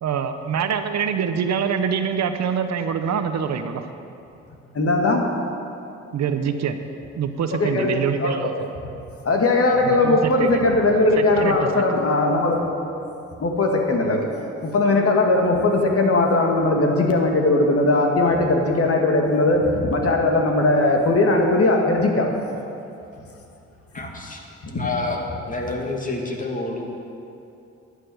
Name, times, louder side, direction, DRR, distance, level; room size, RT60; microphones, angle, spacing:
voice 1, 0.0-3.8 6.1-6.8 7.2-8.7 9.8-10.6 11.4-12.0, right 7 dB, 65° right, 8 dB, 0.9 m, -25 dB
voice 2, 4.8-5.2 7.5-8.5 9.3-12.6 13.4-14.3 14.6-22.3 24.7-24.9, left 2 dB, 50° left, 1 dB, 2.1 m, -19 dB
voice 3, 23.9-24.4 24.7-26.9, left 2 dB, 25° left, 0 dB, 2.5 m, -28 dB
11.5 x 6.7 x 9.4 m, 2.6 s
supercardioid pair, 65°, 29 cm